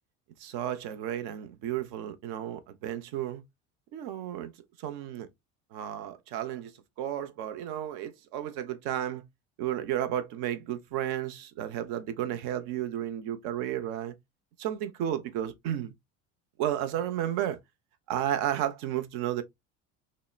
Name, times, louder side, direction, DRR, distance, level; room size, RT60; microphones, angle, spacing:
voice 1, 0.4-3.4 3.9-4.5 4.8-5.3 5.7-6.7 7.0-9.2 9.6-14.1 14.6-15.9 16.6-17.6 18.1-19.4, right 11 dB, 60° right, 0.7 m, -32 dB
2.9 x 2.0 x 2.2 m
hypercardioid pair, 70°, 43 cm